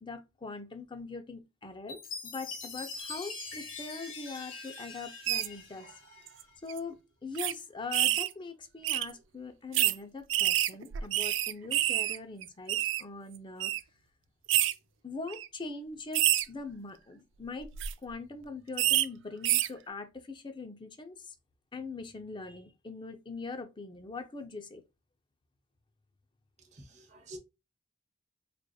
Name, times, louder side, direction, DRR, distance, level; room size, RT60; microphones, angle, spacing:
voice 1, 0.0-5.9 6.6-13.7 15.0-17.7 18.0-21.3 21.7-24.8, left 3 dB, 25° left, 0.5 m, -42 dB
Chime, 1.9-6.5, left 4 dB, 85° left, 1.1 m, -43 dB
sound 1, 5.3-5.5 6.3-6.4 6.7-6.8 7.4-7.5 7.9-8.3 8.8-9.1 9.7-10.0 10.3-12.2 12.4-13.0 13.6-13.8 14.5-14.7 15.3-15.5 16.1-16.4 17.6-17.9 18.8-19.0 19.4-19.7, right 13 dB, 70° right, 0.3 m, -27 dB
voice 2, 26.7-27.4, right 1 dB, 40° right, 0.8 m, -48 dB
4.8 x 2.5 x 2.3 m
head